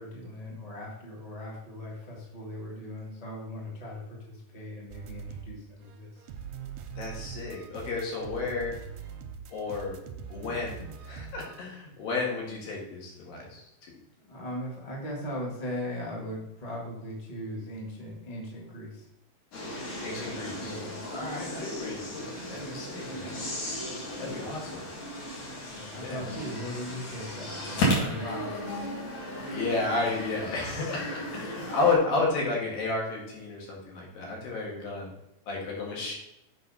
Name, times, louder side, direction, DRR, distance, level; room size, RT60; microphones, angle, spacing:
voice 1, 0.0-6.2 14.2-19.1 20.6-21.1 25.7-28.5, left 1 dB, 30° left, -2 dB, 0.7 m, -39 dB
sound 1, 4.9-5.6 5.8-11.6, right 7 dB, 80° right, 1.7 m, -42 dB
voice 2, 7.0-8.7 9.5-10.0 10.3-13.6 20.0-20.8 21.1-23.4 24.2-24.8 26.0-26.2 29.5-35.1 35.5-36.1, left 3 dB, 85° left, -2 dB, 3.5 m, -32 dB
sound 2, 19.5-32.0, equal, 60° left, 3.3 m, -35 dB
7.6 x 4.2 x 5.6 m, 0.86 s
omnidirectional pair, 3.9 m